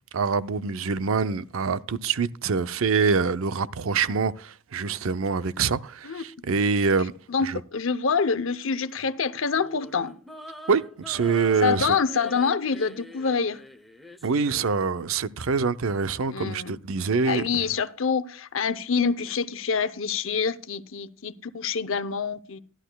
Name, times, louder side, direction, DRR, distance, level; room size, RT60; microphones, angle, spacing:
voice 1, 0.1-7.1 7.4-7.6 10.7-12.0 14.2-17.7, right 5 dB, 75° right, 0.6 m, -25 dB
voice 2, 7.3-10.2 11.6-13.6 16.3-16.8 17.2-22.6, left 5 dB, 65° left, 0.7 m, -26 dB
sound 1, 9.5-14.8, equal, ahead, 0.8 m, -45 dB
14.0 x 11.5 x 2.3 m
head